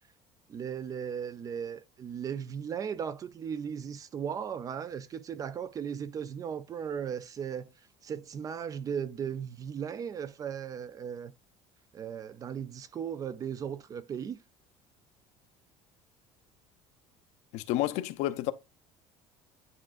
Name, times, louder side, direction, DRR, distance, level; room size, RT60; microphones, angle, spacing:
voice 1, 0.5-7.7 8.0-11.3 11.9-14.4, right 7 dB, 30° right, 0.4 m, -37 dB
voice 2, 17.5-18.5, left 14 dB, 70° left, 0.6 m, -30 dB
9.9 x 4.5 x 2.4 m
cardioid pair, 160°, 13 cm